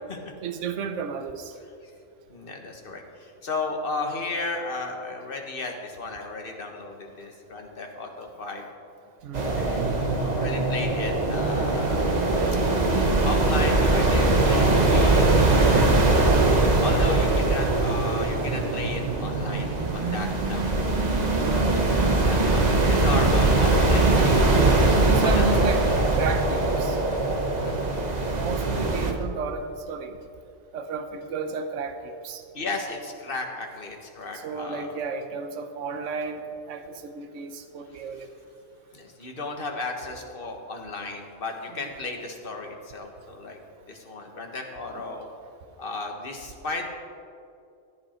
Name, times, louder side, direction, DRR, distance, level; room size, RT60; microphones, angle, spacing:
voice 1, 0.4-1.5 9.2-9.5 21.4-21.8 25.0-25.8 26.1-27.0 28.3-30.2 30.7-32.4 34.3-38.3 41.8-41.9, right 5 dB, 70° right, 7 dB, 1.2 m, -32 dB
voice 2, 2.3-8.6 9.5-12.3 13.2-15.3 16.8-20.9 21.5-21.8 22.1-25.4 27.6-27.8 32.5-34.9 38.9-43.6 43.9-45.3 45.8-46.9, left 3 dB, 45° left, 2 dB, 1.6 m, -34 dB
sound 1, 9.3-29.1, right 2 dB, 35° right, 1.2 m, -21 dB
15.5 x 10.5 x 4.4 m, 2.5 s
omnidirectional pair, 1.4 m